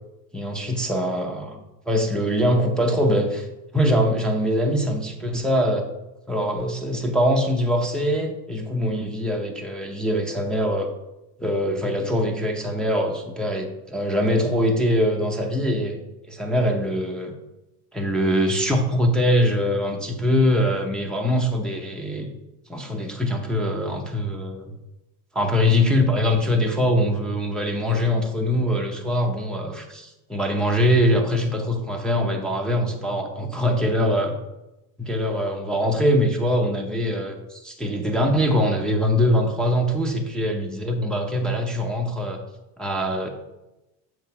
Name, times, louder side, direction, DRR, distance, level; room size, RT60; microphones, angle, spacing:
voice 1, 0.3-1.6 1.9-3.5 3.7-5.9 6.3-10.9 11.4-16.0 16.3-17.3 17.9-22.3 22.7-24.7 25.3-34.3 35.0-42.4 42.8-43.3, equal, ahead, 0 dB, 0.7 m, -23 dB
7.6 x 3.3 x 5.8 m, 0.96 s
supercardioid pair, 130°, 47 cm